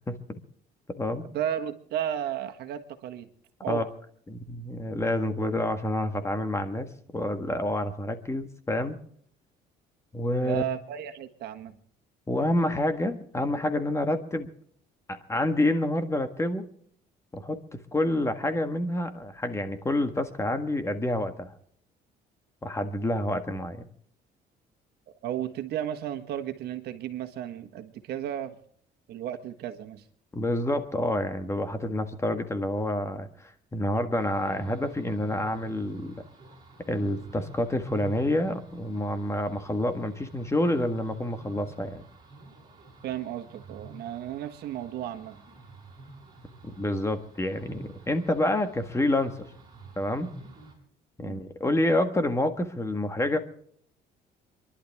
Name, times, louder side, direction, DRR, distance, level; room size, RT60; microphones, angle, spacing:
voice 1, 0.1-0.4 1.0-1.2 3.7-3.8 4.3-9.0 10.1-10.6 12.3-14.5 15.1-16.7 17.3-21.5 22.6-23.9 30.3-36.2 36.9-42.0 46.8-49.4 50.0-50.3 51.2-53.4, left 1 dB, 15° left, 8 dB, 1.6 m, -28 dB
voice 2, 1.3-3.3 3.6-3.8 10.4-11.8 25.1-28.5 29.1-30.0 43.0-45.4 51.2-51.4, right 10 dB, 75° right, 7 dB, 1.5 m, -34 dB
sound 1, 34.2-50.8, right 2 dB, 25° right, 6.6 m, -49 dB
27.5 x 11.5 x 3.5 m, 0.63 s
cardioid pair, 110°, 17 cm